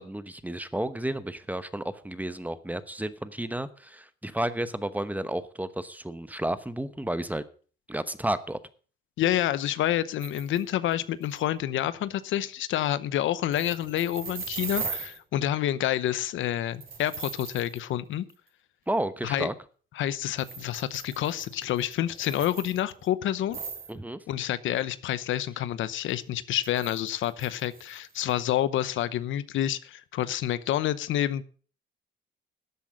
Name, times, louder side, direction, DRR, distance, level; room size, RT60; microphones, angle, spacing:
voice 1, 0.0-7.4 7.9-8.6 18.9-19.5 23.9-24.2, right 1 dB, 10° right, 14 dB, 1.0 m, -32 dB
voice 2, 9.2-18.2 19.2-19.5 20.0-23.6 24.3-31.4, left 12 dB, 80° left, 16 dB, 0.8 m, -28 dB
sound 1, 10.2-10.6 10.9-11.0 11.2-11.4 13.5-15.2 16.8-17.8 18.3-18.4 20.4-23.1 23.5-23.9 26.6-28.3, right 5 dB, 45° right, 4.5 m, -39 dB
12.5 x 8.3 x 6.3 m, 0.42 s
cardioid pair, 90°, 20 cm